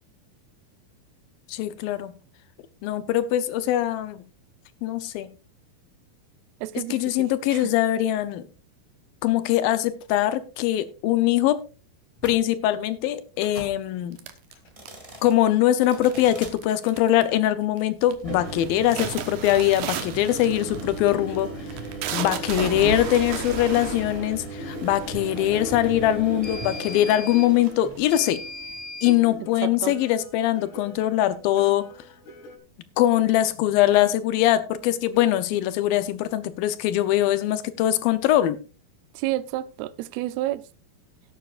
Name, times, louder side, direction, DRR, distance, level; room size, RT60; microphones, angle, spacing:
voice 1, 1.5-2.1 2.8-4.2 4.8-5.3 6.7-8.5 9.2-11.6 12.2-14.2 15.2-21.5 22.1-28.4 29.0-31.9 33.0-38.6, left 13 dB, 80° left, 2.4 m, -22 dB
voice 2, 6.6-6.9 7.2-7.3 7.5-7.6 29.6-29.9 39.2-40.6, right 15 dB, 90° right, 2.6 m, -29 dB
sound 1, 12.2-12.4 13.4-13.7 14.6-15.3 15.8-16.5 18.1-29.2, right 2 dB, 25° right, 0.8 m, -37 dB
sound 2, 13.5-13.6 14.2-14.3 14.5-14.7 15.0-15.1 15.8-16.2 16.7-17.0 17.8-17.9 18.1-18.2 18.4-18.6 19.4-19.6 20.0-20.1 20.3-32.6, left 4 dB, 55° left, 3.1 m, -42 dB
sound 3, 14.2-15.3 16.0-16.6 16.9-17.4 17.8-18.1 18.5-25.5 26.2-26.3 26.6-28.2, right 8 dB, 70° right, 2.5 m, -34 dB
17.5 x 9.1 x 2.4 m
omnidirectional pair, 4.4 m